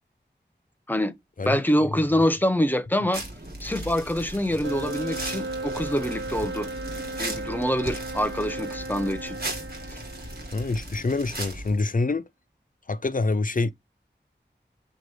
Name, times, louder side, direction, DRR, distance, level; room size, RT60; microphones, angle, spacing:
voice 1, 1.5-3.2 3.6-6.7 7.2-9.4 9.9-10.0, equal, 10° left, 0.8 m, -25 dB
sound 1, 3.1-11.8, right 1 dB, 55° right, 2.0 m, -37 dB
sound 2, 4.6-11.0, right 2 dB, 85° right, 0.9 m, -36 dB
voice 2, 10.5-12.3 12.9-13.7, left 3 dB, 45° left, 0.6 m, -26 dB
6.1 x 2.4 x 3.3 m
wide cardioid pair, 40°, 19 cm